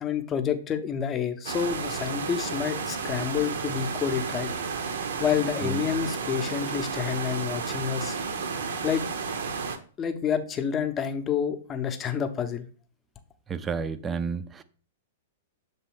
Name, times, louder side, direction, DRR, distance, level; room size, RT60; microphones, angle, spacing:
voice 1, 0.0-4.5 5.2-8.2 8.8-9.0 10.0-12.7, left 8 dB, 20° left, 0.7 m, -28 dB
sound 1, 1.4-9.8, right 5 dB, 60° right, 0.7 m, -32 dB
voice 2, 13.5-14.6, right 5 dB, 15° right, 0.4 m, -31 dB
6.8 x 3.1 x 4.6 m
figure-of-eight pair, 105°, 0 cm